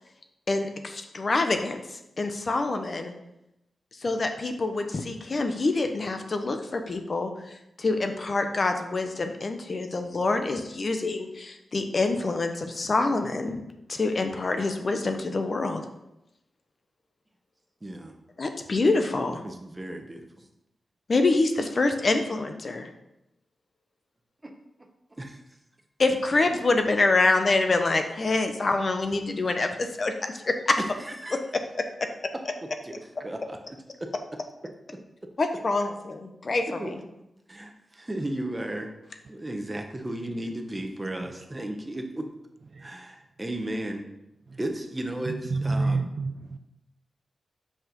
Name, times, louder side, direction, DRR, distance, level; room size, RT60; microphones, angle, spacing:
voice 1, 0.5-1.8 2.2-3.1 4.0-13.6 13.9-15.8 18.4-19.4 21.1-22.9 26.0-30.8 31.3-31.6 35.4-37.0, left 3 dB, 45° left, 6 dB, 0.8 m, -26 dB
voice 2, 17.8-18.2 19.4-20.4 24.4-24.5 25.1-25.4 30.8-31.4 32.8-32.9 33.2-33.6 34.0-34.1 36.8-36.9 37.5-38.9 39.3-42.3 42.8-44.1 44.6-46.0, right 1 dB, 20° right, 4 dB, 0.9 m, -34 dB
voice 3, 45.2-46.6, right 3 dB, 50° right, 8 dB, 0.5 m, -28 dB
5.8 x 5.3 x 5.2 m, 0.88 s
wide cardioid pair, 100°, 0 cm